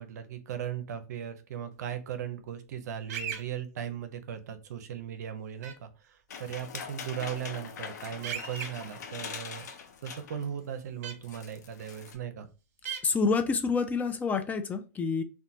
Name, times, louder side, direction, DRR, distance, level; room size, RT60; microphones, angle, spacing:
voice 1, 0.0-9.7 10.0-12.5, right 9 dB, 80° right, 0.5 m, -38 dB
sound 1, 3.1-3.4 5.6-5.7 8.2-8.7 11.0-11.1 12.9-13.0, right 7 dB, 60° right, 0.8 m, -35 dB
sound 2, 6.3-10.6 10.9-11.0 11.2-12.1, left 6 dB, 85° left, 0.5 m, -42 dB
voice 2, 13.0-15.2, left 4 dB, 15° left, 0.3 m, -28 dB
2.9 x 2.1 x 2.5 m
hypercardioid pair, 120°, 9 cm